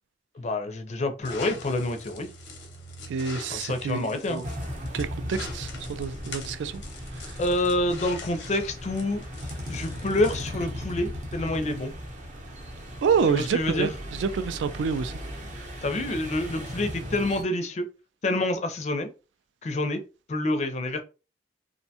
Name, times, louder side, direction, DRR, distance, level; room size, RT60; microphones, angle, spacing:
voice 1, 0.4-2.3 3.5-4.4 7.4-9.2 9.7-11.9 13.3-13.9 15.8-17.9 18.2-19.1 19.6-20.0 20.3-21.0, left 1 dB, 40° left, 0.4 m, -27 dB
sound 1, 1.2-10.6, left 3 dB, 85° left, 0.7 m, -43 dB
voice 2, 3.1-4.5 4.9-6.8 7.1-7.4 13.0-15.1, right 6 dB, 85° right, 0.3 m, -28 dB
sound 2, 4.4-17.4, equal, 40° right, 0.7 m, -37 dB
2.5 x 2.2 x 2.7 m
head